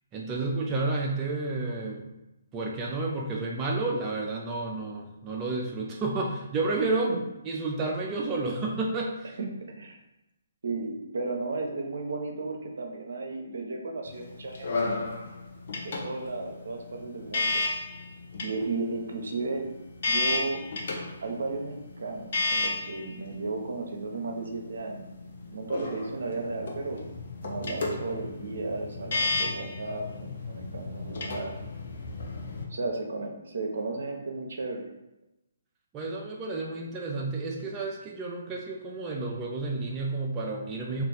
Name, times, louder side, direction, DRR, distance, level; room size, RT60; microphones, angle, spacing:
voice 1, 0.1-2.1 2.5-7.1 7.5-9.4 35.9-41.0, right 3 dB, 20° right, -2 dB, 0.4 m, -31 dB
voice 2, 9.4-10.0 10.6-15.0 15.8-17.6 18.4-19.6 20.1-20.6 21.2-25.1 25.5-27.0 27.4-31.5 32.6-34.9 40.9-41.0, right 3 dB, 70° right, 2 dB, 0.6 m, -34 dB
sound 1, 14.1-32.6, left 3 dB, 55° left, 0.6 m, -34 dB
2.4 x 2.3 x 3.8 m, 0.96 s
hypercardioid pair, 140°, 0 cm